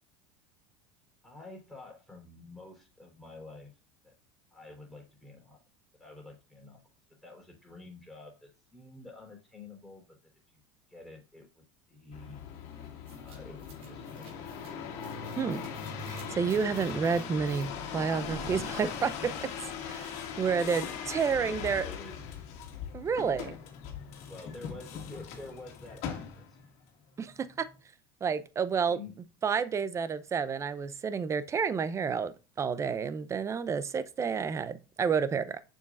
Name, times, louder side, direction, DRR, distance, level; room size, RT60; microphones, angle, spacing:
voice 1, 1.2-3.8 4.0-4.1 4.5-5.6 6.0-6.8 7.1-10.2 10.5-10.6 10.9-12.4 13.1-14.7 20.4-22.1 23.3-23.5 24.3-26.6 28.9-29.1, left 2 dB, ahead, 3.9 m, -49 dB
sound 1, 12.1-26.7 27.3-27.8, left 7 dB, 60° left, 2.0 m, -40 dB
sound 2, 13.1-19.4, right 1 dB, 50° right, 3.0 m, -47 dB
voice 2, 16.1-19.5 19.8-21.8 22.9-23.5 27.2-27.5 28.2-29.0 29.4-35.6, right 6 dB, 20° right, 0.6 m, -30 dB
6.9 x 6.4 x 2.5 m
supercardioid pair, 115°, 13 cm